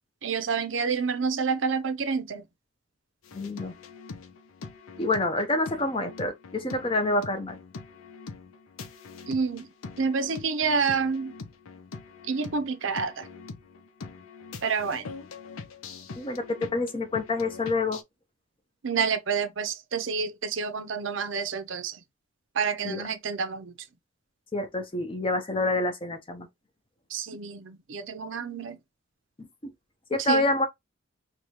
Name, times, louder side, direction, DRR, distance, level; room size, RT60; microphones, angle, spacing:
voice 1, 0.2-2.4 9.3-9.7 10.0-11.3 12.3-13.3 14.6-15.1 18.8-22.0 22.6-23.7 27.1-28.8 30.3-30.5, right 5 dB, 65° right, 0.6 m, -28 dB
vox and bells . Electronic loop, 3.2-18.0, left 4 dB, 85° left, 0.6 m, -43 dB
voice 2, 3.3-3.7 5.0-7.6 16.2-18.0 22.8-23.0 24.5-26.5 29.4-29.7 30.1-30.7, left 2 dB, 25° left, 0.7 m, -27 dB
4.7 x 2.3 x 2.8 m
head